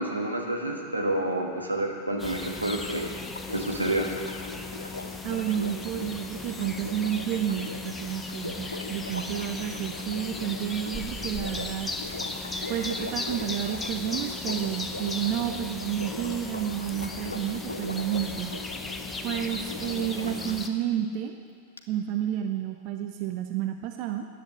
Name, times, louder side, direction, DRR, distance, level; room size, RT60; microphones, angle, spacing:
voice 1, 0.0-3.1 3.5-4.1, right 1 dB, 85° right, 0 dB, 1.6 m, -29 dB
sound 1, 2.2-20.7, left 3 dB, 10° left, 0.8 m, -36 dB
Sink (filling or washing), 2.8-20.6 21.8-21.9, left 3 dB, 80° left, 0.8 m, -41 dB
voice 2, 5.2-11.9 12.7-18.5 19.2-21.3 21.9-24.3, right 11 dB, 40° right, 6 dB, 0.6 m, -30 dB
10.5 x 7.9 x 8.0 m, 2.1 s
figure-of-eight pair, 90°, 0 cm